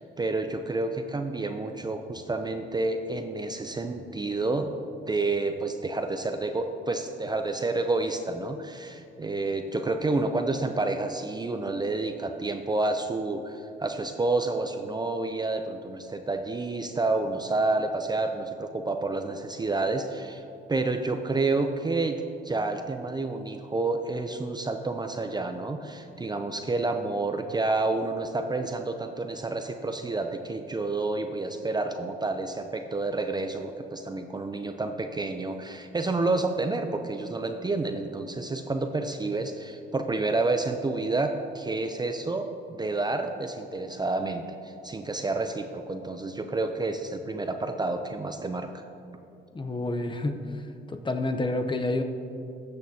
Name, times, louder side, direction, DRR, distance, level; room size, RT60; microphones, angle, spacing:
voice 1, 0.0-4.8 5.1-20.4 20.7-22.2 22.4-48.7, right 3 dB, 20° right, 6 dB, 0.5 m, -29 dB
voice 2, 49.5-50.6 50.9-52.0, left 2 dB, 25° left, 7 dB, 0.7 m, -29 dB
14.5 x 6.6 x 2.8 m, 2.7 s
cardioid pair, 90°, 20 cm